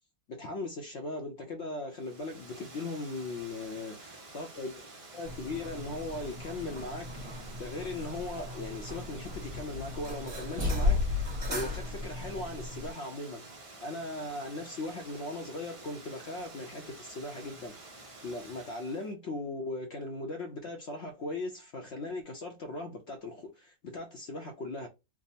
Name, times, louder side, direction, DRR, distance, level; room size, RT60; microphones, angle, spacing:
voice 1, 0.3-4.0 4.3-4.8 5.1-13.4 13.8-24.9, left 2 dB, 60° left, 0.8 m, -39 dB
Water, 1.9-19.1, right 2 dB, 55° right, 0.3 m, -50 dB
sound 1, 5.2-12.9, left 3 dB, 30° right, 1.4 m, -35 dB
3.5 x 2.0 x 4.1 m
omnidirectional pair, 1.6 m